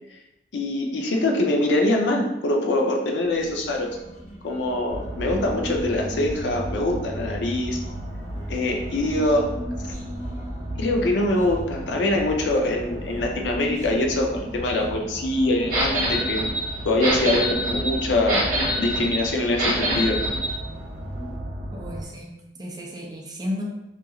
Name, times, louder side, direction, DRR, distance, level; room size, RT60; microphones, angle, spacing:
voice 1, 0.5-3.9 4.4-7.8 8.5-9.5 10.8-16.4 16.9-18.5 18.8-20.2, left 1 dB, 85° left, 1 dB, 0.5 m, -23 dB
Human voice, 3.2-21.4, equal, 45° left, 0.6 m, -40 dB
sound 1, 4.9-22.0, right 1 dB, 85° right, 0.7 m, -35 dB
sound 2, 15.7-20.5, equal, 50° right, 0.9 m, -25 dB
voice 2, 21.7-23.6, left 1 dB, 25° right, -1 dB, 0.4 m, -34 dB
2.4 x 2.3 x 2.8 m, 0.89 s
head